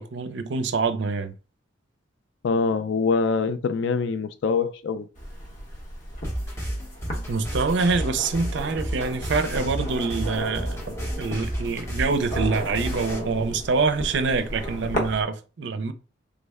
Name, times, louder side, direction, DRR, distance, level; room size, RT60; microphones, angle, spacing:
voice 1, 0.0-1.3 7.3-15.9, right 4 dB, 60° right, 0.4 m, -25 dB
voice 2, 2.4-5.1, left 4 dB, 60° left, 0.3 m, -24 dB
sound 1, 5.2-15.2, equal, 40° left, 1.0 m, -34 dB
sound 2, 6.2-13.2, equal, 15° left, 0.7 m, -32 dB
3.4 x 2.1 x 3.4 m
head